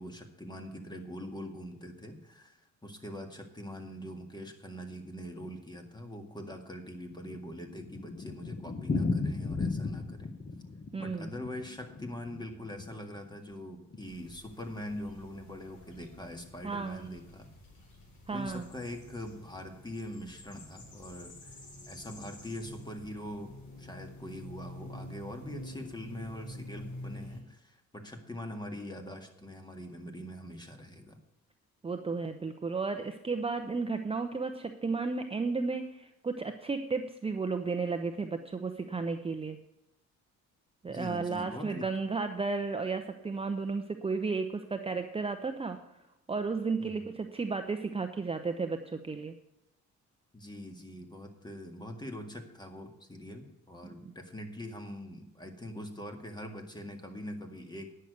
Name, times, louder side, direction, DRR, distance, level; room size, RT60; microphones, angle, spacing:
voice 1, 0.0-10.3 11.0-17.5 18.3-21.6 21.9-23.5 23.8-31.2 40.8-41.9 46.8-47.1 50.3-57.9, left 1 dB, 15° left, 5 dB, 1.8 m, -43 dB
Thunder, 7.0-13.3 13.5-13.6 13.9-14.0 14.2-14.3 14.9-15.2, left 3 dB, 30° left, 1.1 m, -35 dB
voice 2, 10.9-11.3 16.6-17.1 18.3-18.7 31.8-39.6 40.8-45.8 46.3-49.3 53.8-53.9, right 4 dB, 20° right, 6 dB, 0.7 m, -33 dB
sound 1, 14.0-27.4, left 1 dB, 75° left, 4.0 m, -48 dB
10.0 x 6.7 x 8.0 m, 0.88 s
cardioid pair, 90°, 30 cm